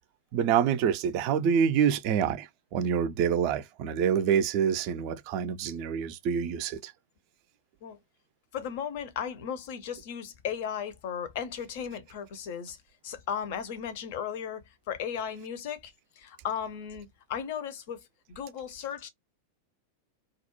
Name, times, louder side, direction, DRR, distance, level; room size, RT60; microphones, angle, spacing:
voice 1, 0.3-2.5 2.7-6.9, right 8 dB, 45° right, 0.4 m, -26 dB
voice 2, 8.5-12.8 13.0-18.0 18.4-19.1, left 8 dB, 50° left, 0.5 m, -36 dB
2.3 x 2.0 x 3.0 m
figure-of-eight pair, 90°, 0 cm